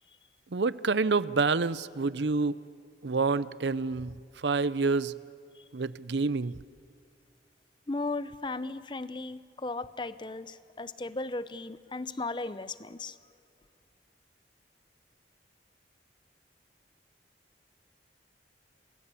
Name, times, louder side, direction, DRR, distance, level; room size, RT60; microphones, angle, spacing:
voice 1, 0.5-2.6 3.0-4.1 4.4-5.1 5.7-6.5, right 4 dB, 75° right, 17 dB, 0.7 m, -27 dB
voice 2, 7.9-13.2, left 3 dB, 25° left, 15 dB, 0.7 m, -36 dB
28.0 x 21.0 x 8.4 m, 2.2 s
head